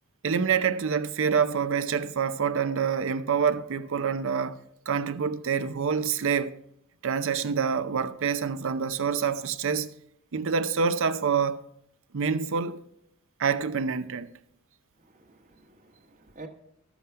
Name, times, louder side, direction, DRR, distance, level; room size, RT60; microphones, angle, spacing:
voice 1, 0.2-4.6 4.9-6.5 7.0-9.9 10.3-11.6 12.1-12.8 13.4-14.3, right 6 dB, 65° right, 0.6 m, -26 dB
voice 2, 15.0-16.5, right 2 dB, 35° right, 1.3 m, -49 dB
12.5 x 7.1 x 4.6 m
head